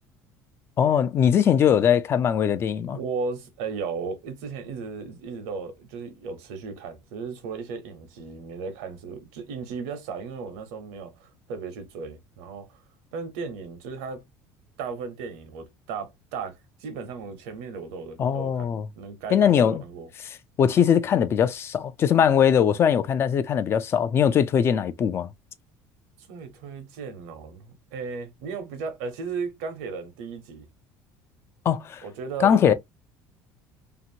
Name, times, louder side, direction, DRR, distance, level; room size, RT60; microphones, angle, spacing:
voice 1, 0.8-3.0 18.2-18.9 19.3-19.8 20.6-25.3 31.7-32.0 32.4-32.7, left 8 dB, 35° left, 0.3 m, -21 dB
voice 2, 2.9-12.8 13.1-14.2 14.8-20.1 26.3-30.7 32.0-32.7, right 5 dB, 90° right, 1.0 m, -35 dB
2.8 x 2.5 x 2.7 m
cardioid pair, 135°, 8 cm